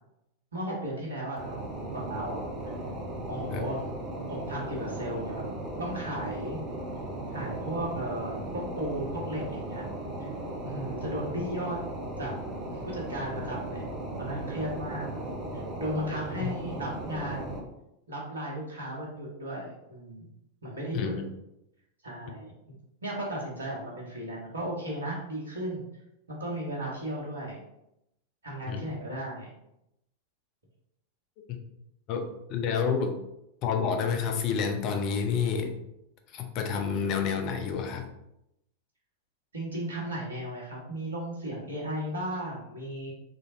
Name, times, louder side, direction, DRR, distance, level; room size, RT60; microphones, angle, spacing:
voice 1, 0.5-1.6 1.9-2.5 3.3-3.8 4.3-6.6 7.3-9.9 10.2-10.3 10.6-11.8 12.2-12.3 12.8-13.9 14.2-17.6 18.1-20.3 20.6-21.1 22.0-22.5 23.0-25.8 26.3-27.6 28.4-29.5 39.5-43.1, right 1 dB, 75° right, -3 dB, 1.3 m, -35 dB
sound 1, 1.4-17.6, right 1 dB, 25° right, 0.9 m, -37 dB
voice 2, 32.1-33.2 33.6-35.7 36.3-38.1, left 6 dB, 40° left, 5 dB, 0.5 m, -29 dB
3.8 x 3.3 x 2.6 m, 0.85 s
figure-of-eight pair, 90°, 0 cm